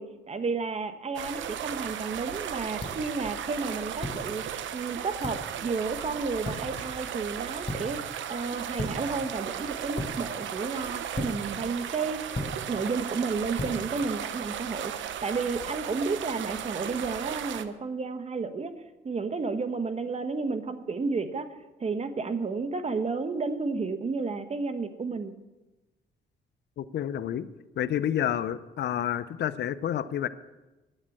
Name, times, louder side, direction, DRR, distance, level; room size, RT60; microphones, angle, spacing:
voice 1, 0.0-4.4 4.7-12.3 12.7-14.9 15.2-18.7 19.0-21.5 21.8-25.3, right 4 dB, 35° right, 10 dB, 1.2 m, -32 dB
sound 1, 1.1-17.6, right 9 dB, 70° right, 0.8 m, -36 dB
sound 2, 1.6-15.1, left 1 dB, 25° left, 5.1 m, -40 dB
voice 2, 26.8-27.5 27.8-30.3, left 10 dB, 60° left, 14 dB, 0.6 m, -29 dB
10.0 x 8.6 x 8.4 m, 1.1 s
cardioid pair, 90°, 20 cm